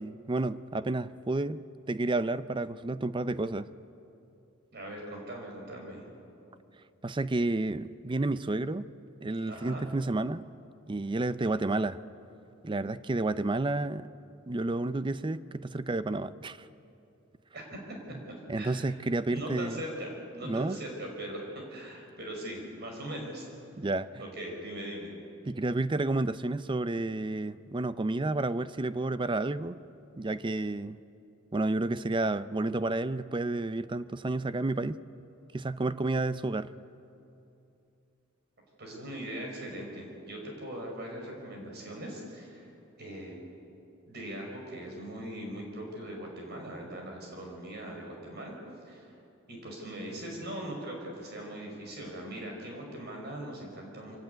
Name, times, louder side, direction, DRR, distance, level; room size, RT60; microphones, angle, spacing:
voice 1, 0.0-1.6 1.9-3.7 7.0-8.9 9.2-10.5 10.9-12.0 12.6-14.1 14.5-16.7 18.5-19.8 20.4-20.8 23.8-24.1 25.5-29.8 30.2-31.0 31.5-35.0 35.5-36.7, right 2 dB, 25° right, 14 dB, 0.5 m, -30 dB
voice 2, 4.7-6.1 9.5-9.8 17.5-17.8 18.5-18.9 19.3-21.4 21.7-23.5 24.2-25.2 38.8-42.7 43.0-43.4 44.1-48.5 48.9-49.1 49.5-54.2, right 1 dB, 55° right, 1 dB, 5.4 m, -40 dB
24.0 x 16.5 x 9.4 m, 2.8 s
head